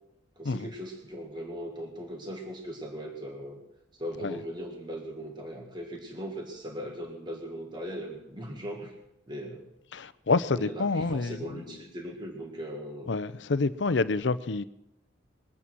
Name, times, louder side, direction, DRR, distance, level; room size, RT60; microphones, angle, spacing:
voice 1, 0.4-3.6 4.0-8.9 9.3-9.7 10.5-13.1, equal, 25° right, 1.9 m, -39 dB
voice 2, 9.9-11.4 13.1-14.6, left 3 dB, 70° left, 0.6 m, -27 dB
22.0 x 8.6 x 6.2 m
head